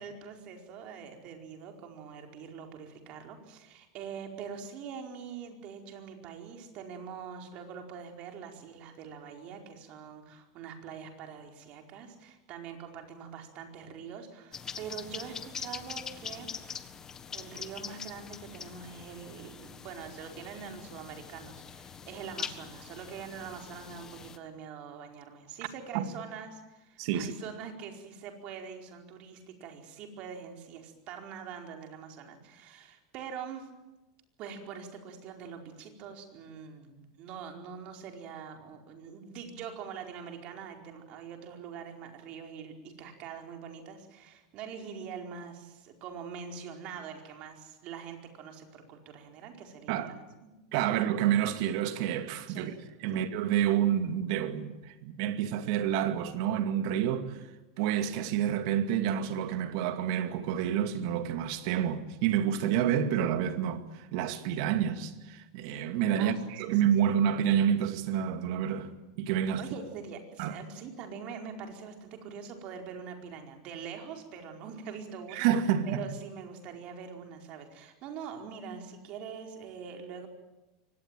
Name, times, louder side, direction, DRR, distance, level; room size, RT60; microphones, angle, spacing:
voice 1, 0.0-16.5 17.3-33.7 34.4-50.5 52.5-52.7 66.1-66.4 69.6-75.5 75.9-80.3, right 6 dB, 45° right, 4.7 m, -44 dB
sound 1, 14.5-24.4, left 6 dB, 20° left, 1.5 m, -43 dB
voice 2, 27.0-27.3 49.9-50.1 50.7-52.7 53.0-57.4 57.8-68.9 69.2-69.6 70.4-70.5 75.3-76.0, right 9 dB, 60° right, 2.3 m, -28 dB
24.0 x 18.5 x 9.2 m
supercardioid pair, 140°, 3 cm